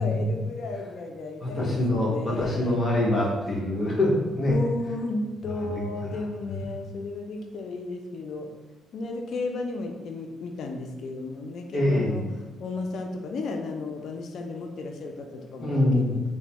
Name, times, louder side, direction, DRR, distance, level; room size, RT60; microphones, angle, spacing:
voice 1, 0.0-2.8 4.4-8.5 8.9-12.2 12.6-16.2, left 3 dB, 65° left, 3 dB, 0.4 m, -34 dB
voice 2, 1.4-4.6 5.6-5.8 11.7-12.2 15.6-16.1, left 1 dB, 35° left, -4 dB, 0.9 m, -24 dB
3.1 x 2.1 x 2.9 m, 1.1 s
cardioid pair, 90°, 0 cm